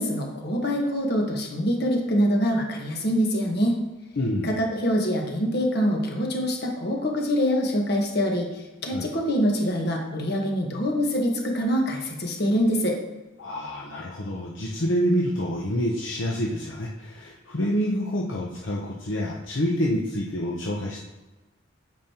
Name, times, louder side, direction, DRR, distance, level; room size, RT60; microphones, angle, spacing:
voice 1, 0.0-3.8 4.4-13.0, equal, 55° left, 1 dB, 1.3 m, -25 dB
voice 2, 4.2-4.5 8.9-9.1 13.4-21.0, equal, 70° left, -3 dB, 0.8 m, -27 dB
8.7 x 5.3 x 2.9 m, 1.2 s
head